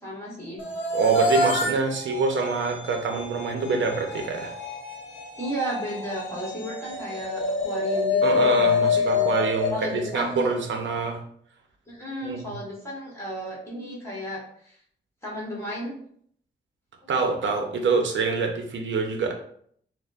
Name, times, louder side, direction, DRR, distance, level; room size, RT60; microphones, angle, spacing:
voice 1, 0.0-0.6 5.4-9.3 9.7-10.5 11.9-14.8 15.2-15.9, equal, 15° left, -5 dB, 1.4 m, -34 dB
sound 1, 0.6-10.8, left 4 dB, 85° left, 0.8 m, -27 dB
voice 2, 0.9-4.5 8.2-11.2 12.2-12.5 17.1-19.3, right 4 dB, 90° right, 3 dB, 0.6 m, -25 dB
6.3 x 2.1 x 2.4 m, 0.63 s
wide cardioid pair, 165°, 19 cm